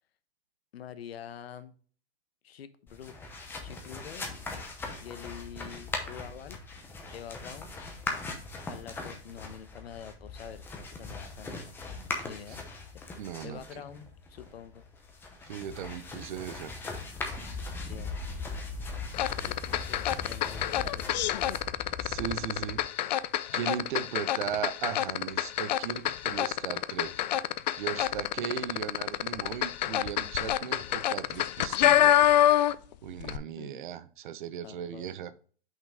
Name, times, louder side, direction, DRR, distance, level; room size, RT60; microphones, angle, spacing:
voice 1, 0.7-1.7 2.4-3.1 3.6-4.3 5.0-6.6 7.1-7.8 8.6-11.7 12.2-12.6 13.4-14.8 17.8-18.2 19.4-21.6 33.6-33.8 34.6-35.1, left 9 dB, 80° left, 12 dB, 1.0 m, -46 dB
sound 1, 2.9-22.8, left 3 dB, 5° left, 0.7 m, -40 dB
voice 2, 13.2-13.8 15.4-16.7 22.0-22.8 23.5-27.1 27.8-32.2 33.0-35.3, right 9 dB, 55° right, 14 dB, 0.7 m, -37 dB
sound 2, 19.1-32.9 33.2-33.4, left 12 dB, 45° left, 0.4 m, -27 dB
5.9 x 5.5 x 3.5 m, 0.42 s
hypercardioid pair, 160°, 30 cm